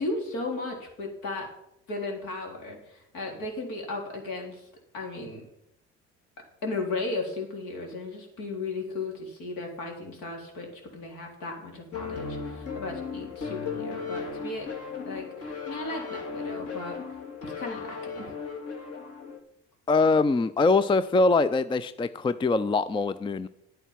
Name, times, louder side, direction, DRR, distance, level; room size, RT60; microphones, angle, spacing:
voice 1, 0.0-1.5 1.9-4.7 4.9-5.4 6.6-10.7 10.9-14.7 15.1-17.0 17.4-18.4, left 3 dB, 65° left, 1 dB, 3.7 m, -35 dB
sound 1, 11.9-19.4, left 5 dB, 45° left, 2.3 m, -36 dB
voice 2, 19.9-23.5, left 3 dB, 15° left, 15 dB, 0.4 m, -23 dB
10.5 x 9.0 x 5.8 m, 0.79 s
hypercardioid pair, 65°, 34 cm